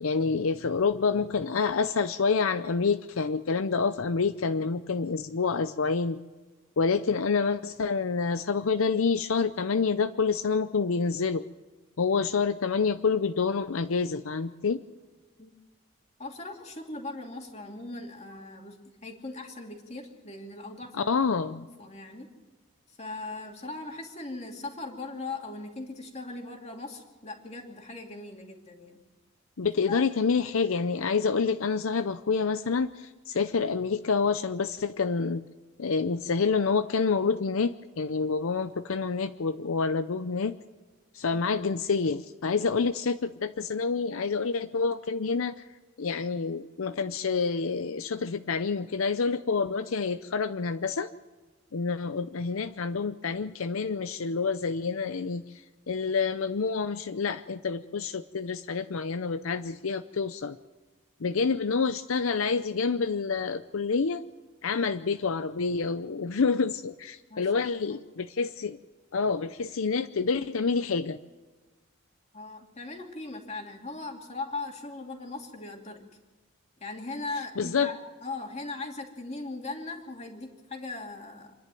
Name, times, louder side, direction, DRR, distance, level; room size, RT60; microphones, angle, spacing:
voice 1, 0.0-6.2 6.8-11.4 12.0-14.8 20.9-21.7 29.6-35.4 35.8-40.6 41.1-45.5 46.0-51.1 51.7-60.6 61.2-64.2 64.6-68.8 69.1-71.2 77.6-77.9, left 5 dB, 80° left, 11 dB, 0.6 m, -28 dB
voice 2, 16.2-21.1 21.5-22.3 22.9-29.0 29.9-30.0 67.3-68.0 72.3-76.0 76.8-81.5, left 3 dB, 30° left, 2 dB, 2.6 m, -39 dB
27.0 x 11.0 x 9.1 m, 1.3 s
head